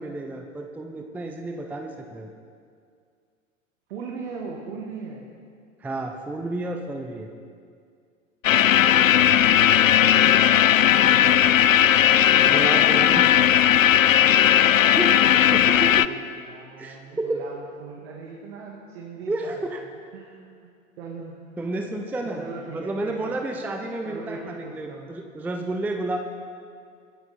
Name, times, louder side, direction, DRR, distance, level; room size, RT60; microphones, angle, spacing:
voice 1, 0.0-2.3 5.8-7.3 12.4-13.3 15.0-15.2 15.5-16.0 16.8-17.4 19.3-19.8 21.6-22.4 22.7-26.2, right 2 dB, 5° right, 4 dB, 0.6 m, -31 dB
voice 2, 3.9-5.3 10.0-11.6 15.7-20.7 21.0-21.8 22.2-23.4 24.0-25.1, right 4 dB, 50° right, -1 dB, 2.0 m, -40 dB
sound 1, 8.4-16.1, left 10 dB, 75° left, 0.5 m, -17 dB
24.0 x 10.5 x 4.2 m, 2.2 s
figure-of-eight pair, 95°, 40 cm